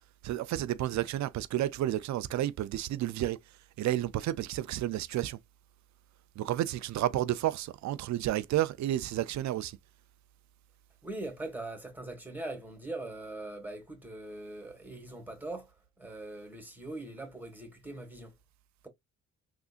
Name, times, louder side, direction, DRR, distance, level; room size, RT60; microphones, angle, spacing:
voice 1, 0.2-3.4 3.8-5.4 6.4-9.8, right 13 dB, 65° right, 0.5 m, -31 dB
voice 2, 11.0-18.4, right 2 dB, 5° right, 1.7 m, -41 dB
3.7 x 2.6 x 2.4 m
cardioid pair, 90°, 30 cm